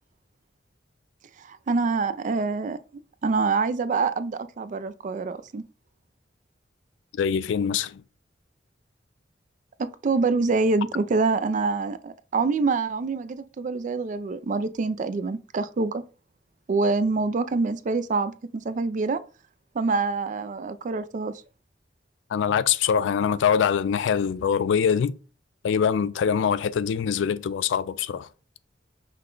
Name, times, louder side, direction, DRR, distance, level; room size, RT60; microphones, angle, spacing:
voice 1, 1.4-5.6 9.8-16.0 16.7-19.2 19.7-21.3, right 4 dB, 45° right, 0.4 m, -26 dB
voice 2, 7.1-8.0 22.3-25.2 25.6-28.3, left 7 dB, 80° left, 0.3 m, -23 dB
5.6 x 2.2 x 3.8 m
head